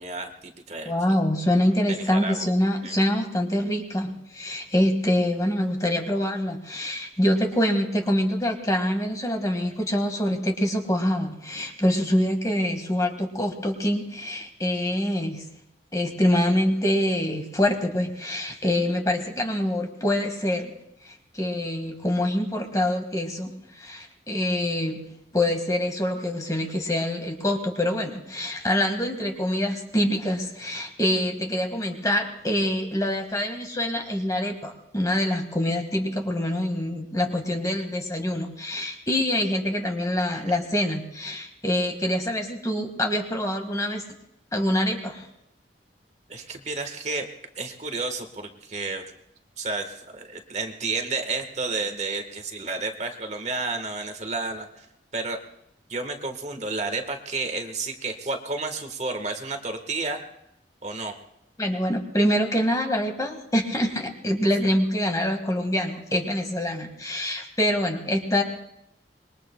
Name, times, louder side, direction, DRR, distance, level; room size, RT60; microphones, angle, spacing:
voice 1, 0.0-0.9 1.9-2.4 2.8-2.9 40.3-40.4 46.3-47.3 47.6-49.0 49.6-54.9 55.1-55.4 55.9-60.2 60.8-61.1, right 3 dB, 40° right, 6 dB, 1.4 m, -31 dB
voice 2, 0.9-15.4 15.9-20.7 21.1-23.5 23.8-44.0 44.5-45.3 61.6-68.4, left 1 dB, 20° left, 4 dB, 1.7 m, -25 dB
26.0 x 22.0 x 2.3 m, 0.83 s
head